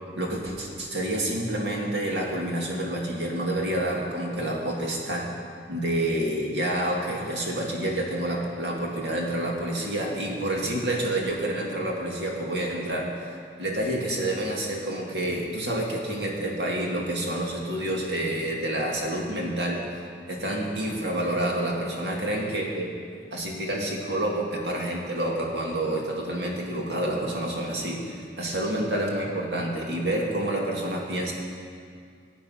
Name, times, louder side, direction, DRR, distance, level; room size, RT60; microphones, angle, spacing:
voice 1, 0.2-5.4 5.7-13.1 13.6-19.8 20.3-22.9 23.3-31.3, right 1 dB, 75° right, -1 dB, 2.3 m, -28 dB
16.0 x 8.6 x 5.8 m, 2.2 s
head